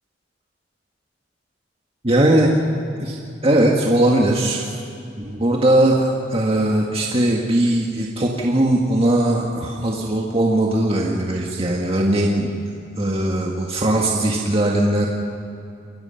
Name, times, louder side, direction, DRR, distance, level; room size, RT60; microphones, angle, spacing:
voice 1, 2.0-2.5 3.0-3.2 3.4-4.7 5.2-12.5 13.0-15.1, right 1 dB, 30° right, -1 dB, 1.9 m, -19 dB
29.0 x 21.5 x 5.9 m, 2.7 s
head